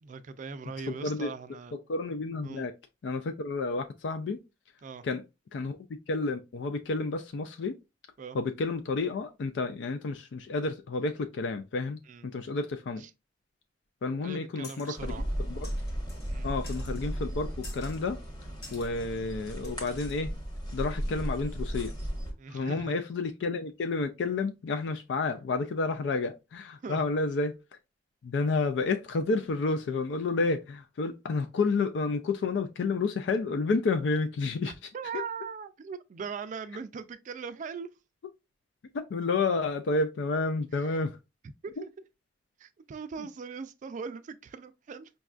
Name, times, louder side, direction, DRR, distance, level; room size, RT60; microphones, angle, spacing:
voice 1, 0.0-1.8 2.4-2.7 4.8-5.0 8.2-8.4 12.1-12.3 13.0-13.1 14.2-15.2 16.3-16.5 18.6-18.8 20.9-21.0 22.4-23.0 26.8-27.0 34.7-37.9 40.7-41.0 41.6-41.9 42.6-45.1, right 5 dB, 45° right, 0.3 m, -40 dB
voice 2, 1.9-2.7 3.0-4.4 5.0-5.2 5.5-5.8 6.1-7.8 8.3-13.0 14.0-15.1 15.5-15.7 16.4-17.5 17.7-18.2 18.7-20.3 20.7-21.9 22.5-27.6 28.2-34.7 35.1-35.2 38.9-41.2, left 3 dB, 80° left, 0.4 m, -30 dB
sound 1, 14.6-15.0 15.6-16.3 16.6-17.1 17.6-18.1 18.6-18.9 19.6-20.2, left 3 dB, 60° left, 0.9 m, -49 dB
sound 2, 15.0-22.3, equal, 25° left, 1.1 m, -35 dB
5.1 x 2.3 x 2.4 m
head